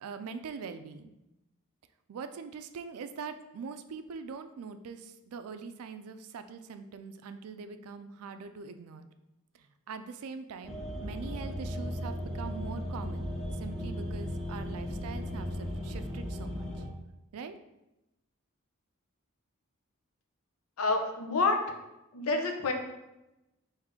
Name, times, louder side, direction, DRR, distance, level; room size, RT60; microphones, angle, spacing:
voice 1, 0.0-1.2 2.1-9.1 9.9-13.3 13.6-16.7 17.3-17.5, right 5 dB, 90° right, 9 dB, 0.4 m, -43 dB
sound 1, 10.6-16.9, equal, ahead, 0.6 m, -36 dB
voice 2, 20.8-21.6 22.1-22.7, left 3 dB, 90° left, 3 dB, 0.7 m, -28 dB
4.9 x 2.7 x 3.6 m, 0.95 s
head